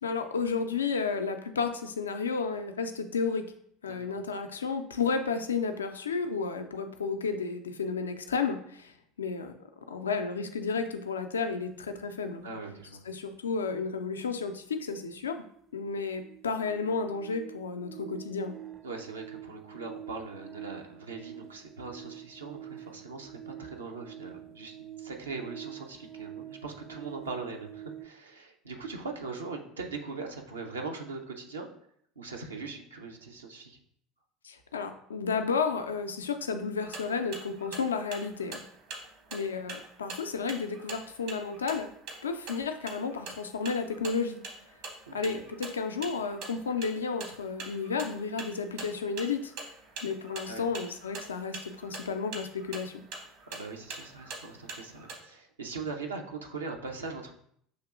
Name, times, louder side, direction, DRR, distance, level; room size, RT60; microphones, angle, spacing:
voice 1, 0.0-3.5 3.8-9.5 9.9-12.4 13.1-15.4 15.7-18.5 34.4-38.6 39.3-41.9 42.2-44.4 45.1-49.5 50.0-53.0, left 5 dB, 80° left, 7 dB, 0.4 m, -32 dB
voice 2, 12.4-13.0 18.8-31.7 32.2-33.8 45.2-45.3 50.5-50.6 53.5-57.3, right 4 dB, 80° right, 2 dB, 0.6 m, -40 dB
sound 1, 14.5-14.6 14.9-28.1, right 12 dB, 30° right, 0.5 m, -47 dB
sound 2, 36.8-55.2, right 3 dB, 60° right, 1.0 m, -44 dB
6.4 x 2.8 x 2.4 m, 0.67 s
figure-of-eight pair, 70°, 0 cm